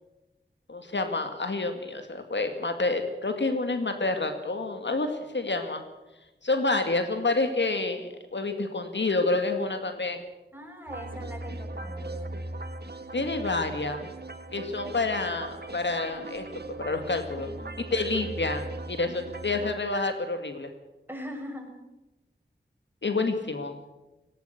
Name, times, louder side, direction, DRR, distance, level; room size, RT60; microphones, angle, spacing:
voice 1, 0.7-5.8 6.4-10.2 13.1-14.0 14.5-16.5 16.8-17.5 17.8-20.7 23.0-23.8, left 3 dB, 75° left, 7 dB, 2.2 m, -28 dB
voice 2, 10.5-12.4 17.3-18.2 21.1-21.7, equal, 10° right, 3 dB, 5.9 m, -42 dB
sound 1, 10.9-19.7, right 2 dB, 60° right, 1.7 m, -38 dB
18.0 x 17.5 x 8.3 m, 1.0 s
wide cardioid pair, 50°, 19 cm